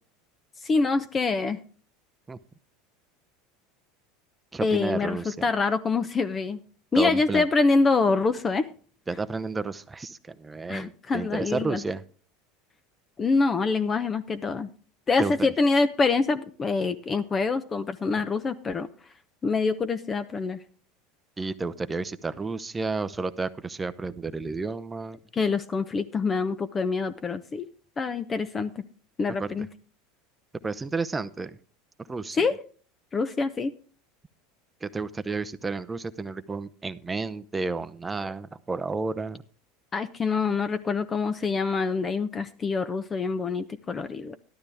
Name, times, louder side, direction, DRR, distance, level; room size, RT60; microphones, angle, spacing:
voice 1, 0.6-1.6 4.6-6.6 6.9-8.7 10.7-11.8 13.2-14.7 15.1-18.9 19.4-20.6 25.3-27.7 28.0-28.7 29.2-29.7 32.4-32.5 33.1-33.7 39.9-44.4, left 4 dB, 25° left, 11 dB, 0.7 m, -25 dB
voice 2, 4.5-5.4 7.0-7.4 9.1-12.0 15.2-15.5 21.4-25.2 29.4-29.7 30.6-31.6 32.1-32.5 34.8-39.4, right 3 dB, 15° right, 14 dB, 0.7 m, -31 dB
12.5 x 12.0 x 3.5 m, 0.41 s
hypercardioid pair, 90°, 0 cm